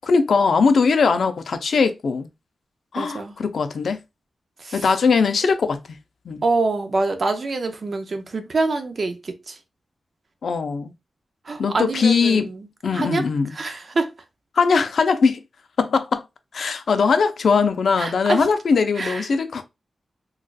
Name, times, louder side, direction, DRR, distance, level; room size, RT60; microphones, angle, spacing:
voice 1, 0.0-2.3 2.9-4.0 4.7-5.8 6.3-6.4 10.4-10.9 11.6-12.5 12.8-13.5 14.6-15.4 15.8-16.2 16.5-19.6, left 5 dB, 70° left, 0.5 m, -20 dB
voice 2, 2.9-3.4 4.6-4.9 6.4-9.6 11.5-12.7 12.9-13.2 13.5-14.1 18.0-18.5 19.0-19.3, right 3 dB, 45° right, 0.5 m, -25 dB
3.9 x 2.4 x 2.4 m
wide cardioid pair, 130°, 0 cm